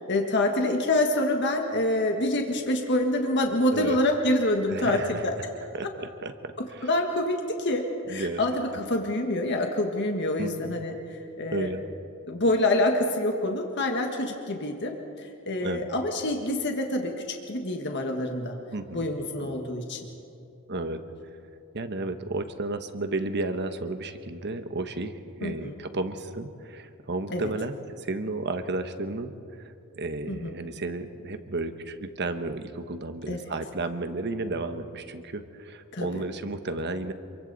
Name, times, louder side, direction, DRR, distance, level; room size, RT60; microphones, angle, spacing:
voice 1, 0.0-5.3 6.8-11.7 12.3-18.6 18.9-20.1 25.4-25.8 27.3-27.5 30.3-30.6 33.3-33.4 35.9-36.2, left 1 dB, 55° left, 3 dB, 1.6 m, -27 dB
voice 2, 4.7-5.2 5.7-6.9 8.1-8.4 8.7-8.8 10.4-10.8 11.5-11.8 15.6-15.8 18.7-19.1 19.4-19.6 20.7-21.0 21.7-37.1, right 2 dB, 50° right, 8 dB, 1.2 m, -33 dB
27.5 x 23.5 x 4.1 m, 2.6 s
head